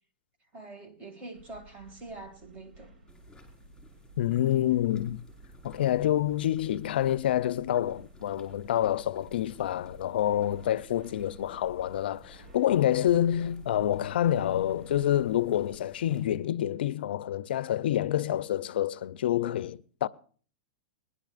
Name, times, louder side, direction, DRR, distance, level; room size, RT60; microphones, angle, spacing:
voice 1, 0.5-2.9, right 2 dB, 25° right, 2.1 m, -45 dB
sound 1, 1.3-15.8, right 2 dB, 70° right, 3.5 m, -53 dB
sound 2, 3.1-16.2, left 3 dB, 10° left, 4.7 m, -57 dB
voice 2, 4.2-5.2 5.6-20.1, left 11 dB, 75° left, 0.4 m, -27 dB
21.0 x 11.0 x 2.5 m
hypercardioid pair, 125°, 5 cm